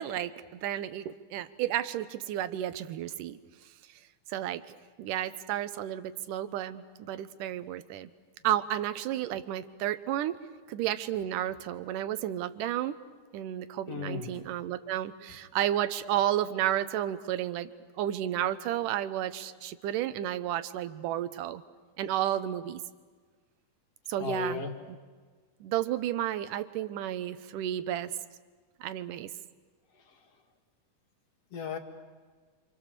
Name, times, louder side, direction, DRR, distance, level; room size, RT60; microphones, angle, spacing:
voice 1, 0.0-3.4 4.3-8.1 8.4-10.4 10.7-13.0 13.3-17.7 18.0-21.6 22.0-22.8 24.1-24.6 25.6-28.1 28.8-29.3, right 12 dB, 70° right, 12 dB, 2.3 m, -32 dB
voice 2, 13.9-14.5 24.2-24.8 29.9-30.3 31.5-31.8, left 4 dB, 45° left, 3 dB, 2.9 m, -36 dB
29.5 x 27.0 x 6.8 m, 1.4 s
omnidirectional pair, 4.2 m